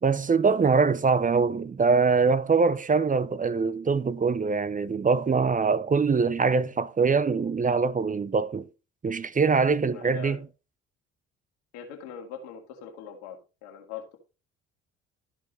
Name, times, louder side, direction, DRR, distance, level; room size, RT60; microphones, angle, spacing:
voice 1, 0.0-8.7 9.0-10.4, right 5 dB, 25° right, 0.7 m, -23 dB
voice 2, 9.9-10.4 11.7-14.2, left 6 dB, 85° left, 2.3 m, -41 dB
13.5 x 4.6 x 4.0 m
hypercardioid pair, 55°, 31 cm